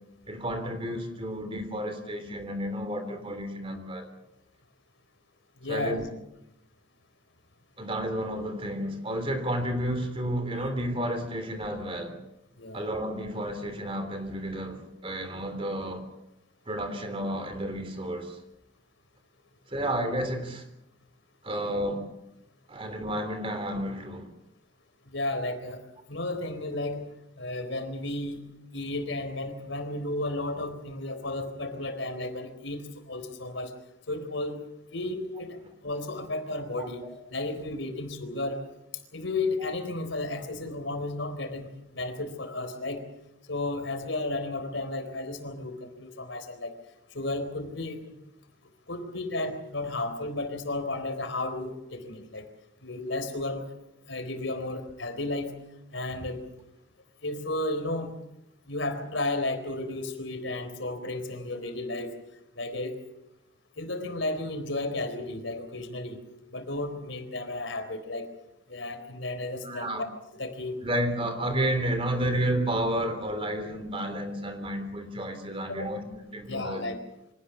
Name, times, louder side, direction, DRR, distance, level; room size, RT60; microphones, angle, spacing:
voice 1, 0.3-4.1 5.7-6.1 7.8-12.2 12.7-16.1 16.6-18.4 19.7-20.7 21.4-22.1 22.7-24.3 36.8-36.9 69.6-70.0 70.8-76.0 76.3-76.8, right 1 dB, 30° right, 8 dB, 3.4 m, -31 dB
voice 2, 5.6-6.0 12.6-12.9 25.1-25.8 26.1-27.0 27.4-28.4 28.7-33.7 34.1-34.6 34.9-35.6 35.8-37.0 37.3-38.6 39.1-43.0 43.5-46.8 47.1-48.0 48.9-52.5 52.8-53.7 54.1-55.5 55.9-56.4 57.2-58.2 58.7-62.2 62.5-63.0 63.8-66.2 66.5-68.3 68.7-70.1 70.3-70.8 75.7-75.9 76.5-77.0, left 2 dB, 75° left, 7 dB, 4.0 m, -33 dB
25.0 x 18.5 x 7.2 m, 0.86 s
head